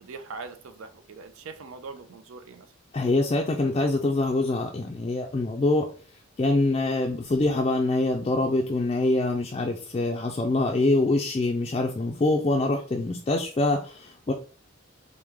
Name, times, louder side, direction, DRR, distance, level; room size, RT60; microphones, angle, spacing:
voice 1, 0.0-2.7, right 4 dB, 90° right, 0.5 m, -41 dB
voice 2, 2.9-5.9 6.4-14.3, left 2 dB, 30° left, 0.3 m, -24 dB
4.7 x 2.2 x 3.4 m
head